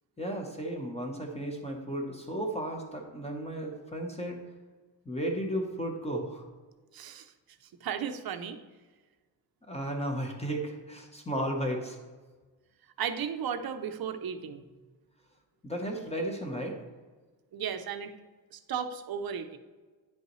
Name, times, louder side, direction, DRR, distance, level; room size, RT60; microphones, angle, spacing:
voice 1, 0.2-4.4 5.0-6.4 9.7-12.0 15.6-16.8, right 1 dB, 15° left, 1 dB, 0.8 m, -34 dB
voice 2, 6.9-7.3 7.8-8.6 13.0-14.6 17.5-18.1 18.5-19.6, right 7 dB, 55° right, 9 dB, 0.6 m, -35 dB
9.9 x 5.4 x 3.1 m, 1.3 s
wide cardioid pair, 160°, 44 cm